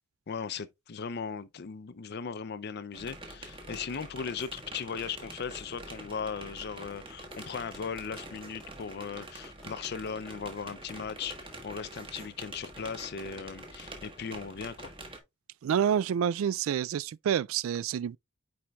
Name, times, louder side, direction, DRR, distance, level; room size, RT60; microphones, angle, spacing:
voice 1, 0.3-14.9, left 6 dB, 55° left, 0.5 m, -38 dB
sound 1, 2.9-15.2, right 1 dB, 25° right, 1.4 m, -46 dB
sound 2, 6.9-12.6, equal, 5° left, 1.2 m, -53 dB
voice 2, 15.6-18.2, right 8 dB, 85° right, 0.3 m, -28 dB
9.4 x 4.3 x 2.3 m
head